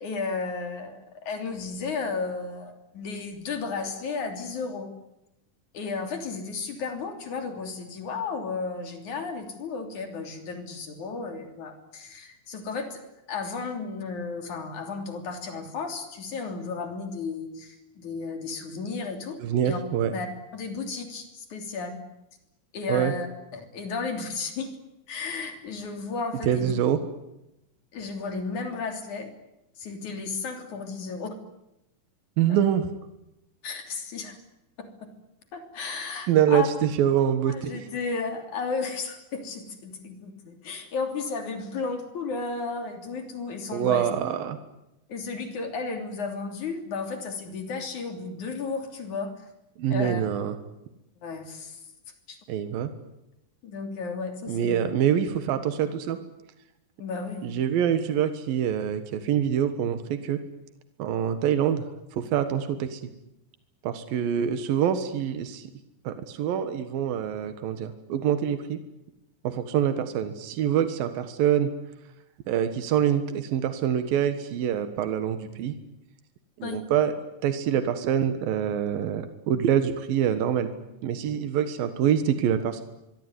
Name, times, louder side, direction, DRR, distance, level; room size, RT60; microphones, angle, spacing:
voice 1, 0.0-4.9 5.7-13.0 13.3-19.4 19.7-19.8 20.1-20.3 20.5-22.0 22.7-23.3 23.5-24.7 25.1-26.7 27.9-29.3 29.8-31.3 32.5-32.6 33.6-34.4 34.8-35.1 35.5-36.7 37.5-44.1 45.1-49.4 49.9-50.2 51.2-51.8 52.3-52.4 53.6-54.9 57.0-57.6 76.6-76.8, left 4 dB, 60° left, 6 dB, 4.5 m, -33 dB
voice 2, 19.4-20.1 22.9-23.1 26.5-27.0 32.4-32.9 36.3-37.7 43.7-44.6 49.8-50.6 52.5-52.9 54.5-56.2 57.4-60.4 61.0-61.8 62.2-63.0 63.8-65.6 66.0-68.8 69.4-71.7 72.5-75.7 76.6-77.1 77.4-80.7 81.0-82.8, right 9 dB, 85° right, 10 dB, 3.3 m, -25 dB
24.5 x 23.5 x 9.7 m, 0.88 s
omnidirectional pair, 4.0 m